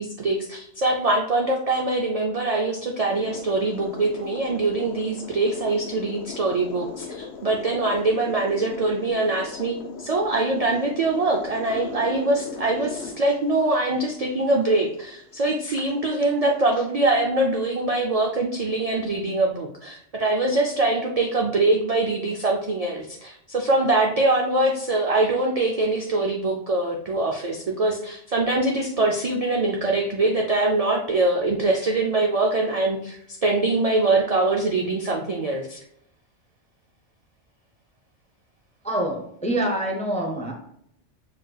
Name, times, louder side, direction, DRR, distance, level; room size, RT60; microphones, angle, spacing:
voice 1, 0.0-35.8, right 2 dB, 60° right, 0 dB, 0.4 m, -23 dB
sound 1, 3.1-16.9, left 5 dB, 70° left, 0.9 m, -39 dB
voice 2, 38.8-40.5, right 1 dB, 10° left, 1 dB, 0.4 m, -26 dB
6.4 x 3.3 x 2.3 m, 0.71 s
omnidirectional pair, 1.2 m